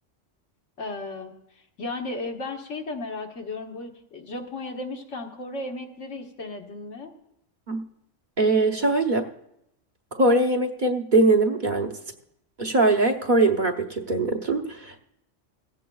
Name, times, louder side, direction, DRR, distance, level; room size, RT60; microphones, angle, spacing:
voice 1, 0.8-1.3 1.8-7.1, left 2 dB, 75° left, 2 dB, 1.6 m, -35 dB
voice 2, 8.4-9.3 10.2-12.0 12.6-15.0, right 2 dB, 45° right, 2 dB, 1.0 m, -21 dB
16.0 x 15.5 x 2.3 m, 0.78 s
omnidirectional pair, 1.3 m